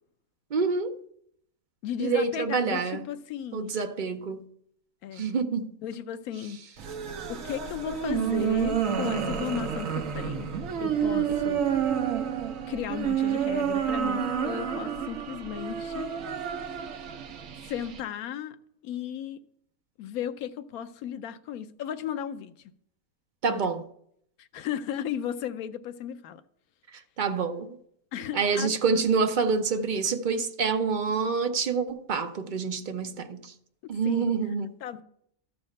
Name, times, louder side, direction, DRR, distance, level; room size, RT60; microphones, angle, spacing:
voice 1, 0.5-1.0 2.0-3.0 3.5-4.4 5.1-5.7 23.4-23.8 26.9-27.8 28.3-33.5 33.9-34.7, right 5 dB, 50° right, 0.6 m, -27 dB
voice 2, 1.8-3.7 5.0-5.3 5.8-6.6 7.3-10.5 10.8-11.6 12.7-16.1 17.7-18.6 18.8-19.4 20.0-22.5 23.5-23.6 24.4-26.4 28.1-28.7 34.0-34.4 34.8-35.0, left 9 dB, 90° left, 1.1 m, -35 dB
sound 1, 6.8-18.0, right 8 dB, 70° right, 1.2 m, -29 dB
13.0 x 4.3 x 6.5 m
omnidirectional pair, 1.5 m